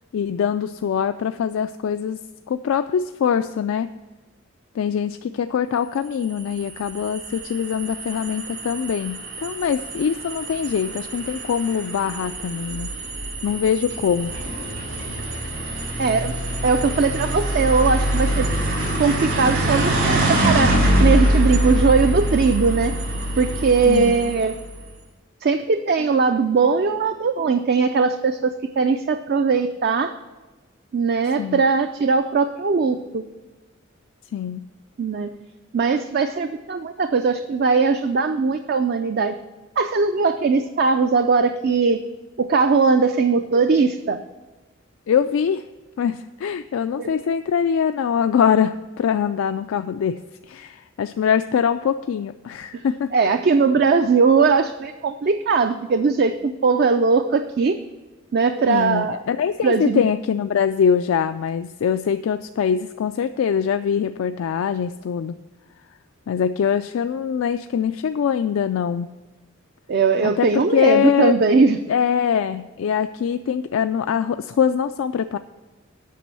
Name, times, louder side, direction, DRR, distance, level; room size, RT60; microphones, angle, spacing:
voice 1, 0.1-2.2 2.5-3.9 4.8-12.9 13.4-14.3 23.9-24.4 31.4-31.6 34.3-34.6 45.1-45.6 46.0-50.2 50.5-53.1 58.7-65.3 66.3-69.1 70.2-71.4 71.9-75.4, left 7 dB, 75° left, 9 dB, 0.3 m, -23 dB
sound 1, 6.2-24.7, right 1 dB, 75° right, 3.8 m, -24 dB
voice 2, 16.0-16.3 16.6-18.5 19.0-22.9 23.4-24.5 25.4-30.1 30.9-33.3 35.0-35.3 35.7-39.4 39.8-42.0 42.4-44.2 47.0-47.1 52.7-52.8 53.1-57.8 58.3-59.2 59.6-60.0 69.9-71.8, right 4 dB, 50° right, 8 dB, 0.4 m, -20 dB
8.4 x 6.1 x 7.4 m, 1.2 s
head